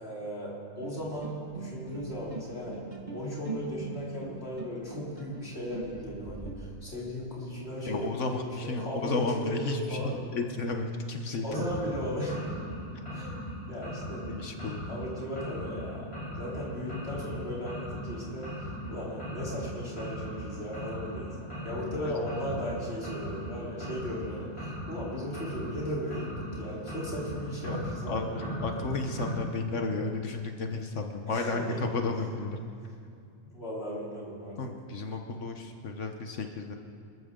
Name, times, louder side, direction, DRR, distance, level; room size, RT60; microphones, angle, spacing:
voice 1, 0.0-2.8 3.1-10.2 11.4-12.4 13.1-13.4 13.7-14.2 14.9-16.1 16.4-21.3 21.6-26.3 26.6-29.0 31.3-31.8 33.5-34.6, equal, 55° left, -6 dB, 4.0 m, -36 dB
sound 1, 0.8-6.5, right 3 dB, 35° right, 1.9 m, -42 dB
voice 2, 7.8-11.7 14.3-14.9 21.8-21.9 22.2-22.7 27.6-27.8 28.1-32.6 34.6-36.7, left 3 dB, 75° left, 4 dB, 1.4 m, -33 dB
sound 2, 11.5-29.4, equal, 25° left, 3.4 m, -38 dB
26.0 x 14.5 x 3.8 m, 2.4 s
omnidirectional pair, 1.3 m